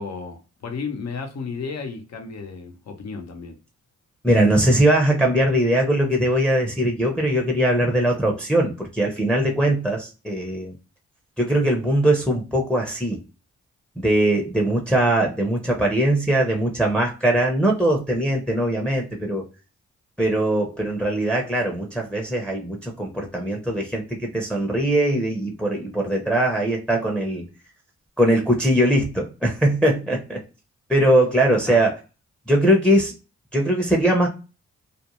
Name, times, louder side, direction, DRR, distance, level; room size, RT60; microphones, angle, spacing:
voice 1, 0.0-3.6 31.6-31.9, left 5 dB, 65° left, 0.8 m, -33 dB
voice 2, 4.2-10.7 11.4-13.2 14.0-19.4 20.2-27.4 28.2-30.4 30.9-31.9 32.5-33.1 33.5-34.3, right 1 dB, 5° left, 0.7 m, -21 dB
2.5 x 2.1 x 2.9 m
cardioid pair, 60°, 29 cm